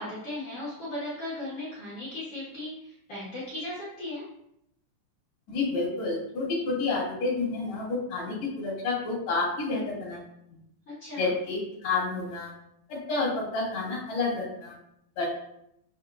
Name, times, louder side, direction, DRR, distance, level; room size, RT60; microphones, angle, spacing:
voice 1, 0.0-2.7 3.1-4.2 11.0-11.3, left 1 dB, 75° left, -8 dB, 1.3 m, -36 dB
voice 2, 5.5-10.2 11.2-12.5 12.9-14.7 15.2-15.3, left 3 dB, 45° left, -5 dB, 3.0 m, -29 dB
7.1 x 5.6 x 2.5 m, 0.77 s
omnidirectional pair, 5.2 m